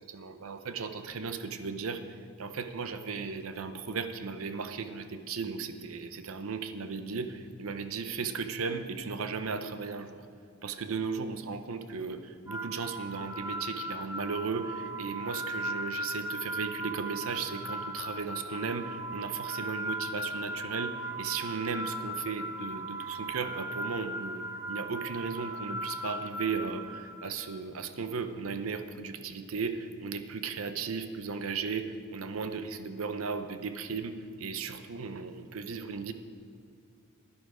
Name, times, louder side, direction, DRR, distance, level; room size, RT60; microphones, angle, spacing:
voice 1, 0.0-10.3 10.6-36.1, right 5 dB, 75° right, 9 dB, 0.7 m, -36 dB
sound 1, 12.5-27.6, right 1 dB, 10° right, 0.6 m, -38 dB
11.0 x 9.9 x 4.9 m, 2.4 s
head